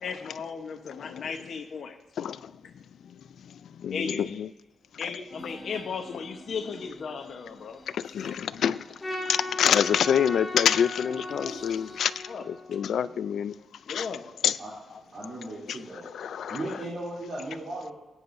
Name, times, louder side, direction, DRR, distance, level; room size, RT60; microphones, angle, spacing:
voice 1, 0.0-2.0 3.9-4.3 5.0-7.8 8.5-8.6 8.9-9.0 12.2-12.5 13.9-14.6 14.9-15.0 15.4-15.5, left 5 dB, 70° left, 4 dB, 0.9 m, -36 dB
voice 2, 3.8-4.5 5.0-5.1 8.1-8.8 9.3-12.1 12.4-13.5 13.9-14.1 14.4-14.6 15.7-15.8 16.1-16.6, left 8 dB, 90° left, 16 dB, 0.4 m, -26 dB
sound 1, 5.3-12.2, left 2 dB, 45° left, 3.1 m, -47 dB
Trumpet, 9.0-13.4, left 2 dB, 15° left, 2.5 m, -37 dB
voice 3, 15.1-16.0 16.5-17.9, right 1 dB, 45° right, -7 dB, 3.0 m, -37 dB
20.0 x 9.7 x 2.6 m, 1.0 s
wide cardioid pair, 140°, 0 cm